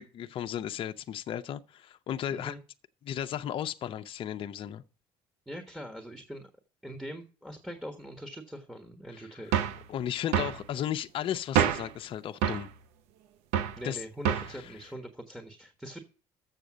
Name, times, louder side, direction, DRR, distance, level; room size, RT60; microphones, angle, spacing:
voice 1, 0.0-2.5 3.0-4.8 9.1-9.3 9.9-12.7 13.8-14.0 14.5-14.6, left 10 dB, 55° left, 0.6 m, -35 dB
voice 2, 5.5-6.5 6.8-9.5 13.8-16.0, equal, 5° right, 1.4 m, -42 dB
sound 1, 9.5-9.8 10.3-10.6 11.6-11.9 12.4-12.7 13.5-13.8 14.2-14.6, right 9 dB, 85° right, 0.7 m, -27 dB
7.3 x 6.7 x 6.2 m
supercardioid pair, 85°, 11 cm